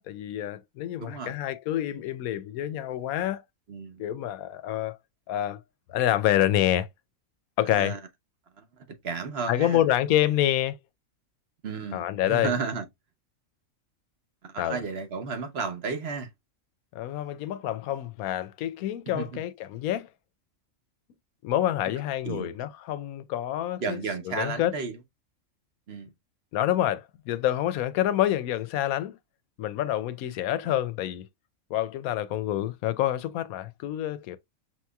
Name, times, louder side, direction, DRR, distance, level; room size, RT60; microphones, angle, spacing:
voice 1, 0.0-3.4 4.0-5.0 5.3-5.6 5.9-6.9 7.6-7.9 9.5-10.8 11.9-12.5 14.6-14.8 16.9-20.1 21.4-24.0 24.3-24.7 26.5-29.2 29.6-31.3 31.7-34.4, left 12 dB, 90° left, 1.0 m, -27 dB
voice 2, 1.0-1.4 3.7-4.0 7.7-8.0 8.6-9.8 11.6-12.8 14.4-16.3 19.1-19.4 22.2-22.5 23.8-24.9 25.9-26.1, right 5 dB, 55° right, 0.9 m, -33 dB
6.2 x 3.0 x 2.2 m
omnidirectional pair, 1.5 m